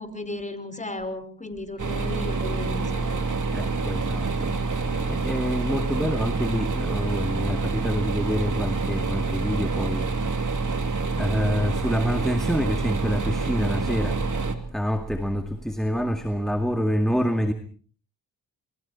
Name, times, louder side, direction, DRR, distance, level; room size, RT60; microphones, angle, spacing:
voice 1, 0.0-3.3, left 2 dB, 15° left, 5.5 m, -35 dB
sound 1, 1.8-14.6, right 3 dB, 45° right, 2.8 m, -27 dB
voice 2, 3.5-14.3 14.5-17.5, equal, ahead, 2.2 m, -27 dB
28.5 x 23.0 x 4.4 m
supercardioid pair, 55°, 43 cm